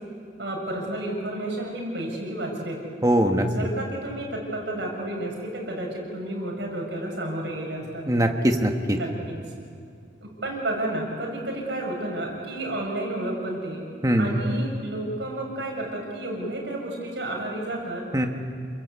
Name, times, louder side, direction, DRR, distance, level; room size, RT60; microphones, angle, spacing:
voice 1, 0.4-2.8 3.4-8.1 8.9-9.4 10.2-13.8 14.2-18.0, right 1 dB, 65° right, -1 dB, 7.5 m, -31 dB
voice 2, 3.0-3.5 8.1-9.0 14.0-14.4 18.1-18.3, right 1 dB, 20° right, 4 dB, 1.6 m, -21 dB
29.5 x 22.0 x 8.6 m, 2.4 s
head